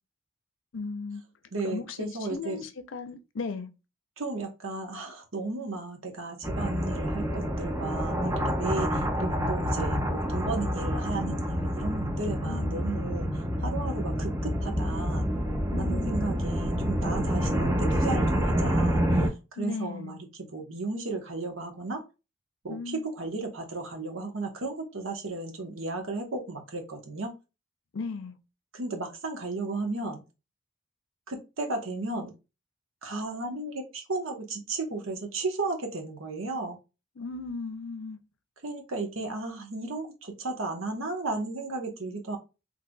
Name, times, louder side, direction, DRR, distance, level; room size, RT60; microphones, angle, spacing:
voice 1, 0.7-1.2 1.6-3.7 12.4-12.8 15.7-16.1 19.6-20.2 22.7-23.0 27.9-28.4 37.2-38.2, left 4 dB, 75° left, 0.5 m, -36 dB
voice 2, 1.5-2.7 4.2-15.2 15.8-22.0 22.6-27.3 28.7-30.2 31.3-32.3 33.0-36.8 38.6-42.4, right 3 dB, 80° right, 1.1 m, -34 dB
sound 1, 6.4-19.3, equal, 15° right, 0.7 m, -28 dB
3.9 x 3.2 x 2.2 m
head